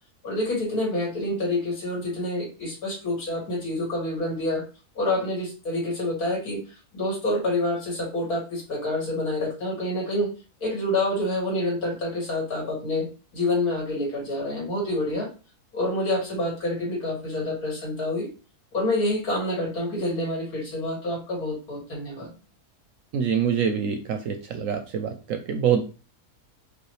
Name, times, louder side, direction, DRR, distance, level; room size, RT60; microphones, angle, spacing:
voice 1, 0.2-4.6 5.0-6.6 6.9-10.3 10.6-13.1 13.3-15.3 15.7-18.3 18.7-22.3, left 1 dB, 70° left, -2 dB, 2.5 m, -27 dB
voice 2, 23.1-25.8, right 7 dB, 70° right, 6 dB, 0.8 m, -25 dB
4.9 x 2.4 x 3.2 m, 0.34 s
omnidirectional pair, 1.7 m